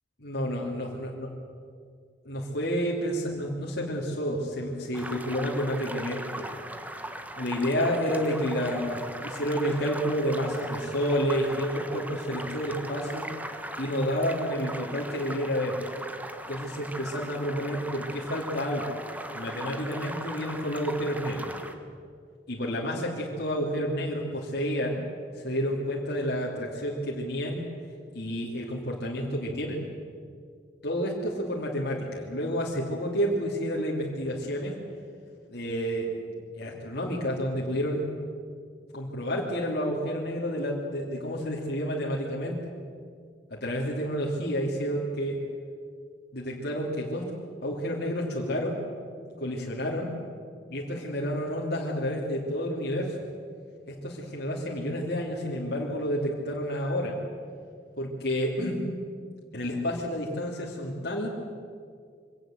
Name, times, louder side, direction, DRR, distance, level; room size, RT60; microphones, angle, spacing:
voice 1, 0.2-1.3 2.2-6.5 7.3-13.3 13.8-15.8 16.5-19.0 19.3-21.5 22.5-25.0 25.3-27.7 28.1-29.8 30.8-34.8 35.5-38.1 38.9-42.7 43.5-45.4 46.3-47.4 47.6-48.8 49.4-50.1 50.7-53.2 53.9-57.2 58.0-58.8 59.5-61.3, equal, 60° left, -3 dB, 2.9 m, -30 dB
sound 1, 4.9-21.7, right 1 dB, 10° right, 1.4 m, -39 dB
24.0 x 17.5 x 7.9 m, 2.2 s
head